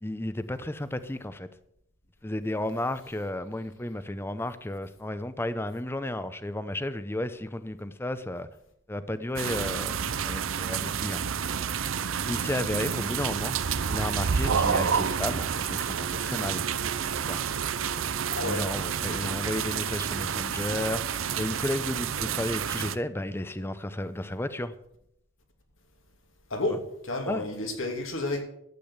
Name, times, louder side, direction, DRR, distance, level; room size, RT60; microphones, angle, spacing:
voice 1, 0.0-1.5 2.2-8.5 8.9-11.2 12.2-13.5 13.9-16.7 17.3-17.4 18.4-24.7 26.7-26.8 27.3-27.4, left 1 dB, 10° left, 12 dB, 0.7 m, -33 dB
sound 1, 9.4-23.0, right 7 dB, 90° right, 0.7 m, -29 dB
voice 2, 18.3-18.7 19.0-19.2 26.5-28.4, left 2 dB, 80° left, 3 dB, 2.7 m, -31 dB
12.0 x 8.5 x 7.1 m, 0.77 s
head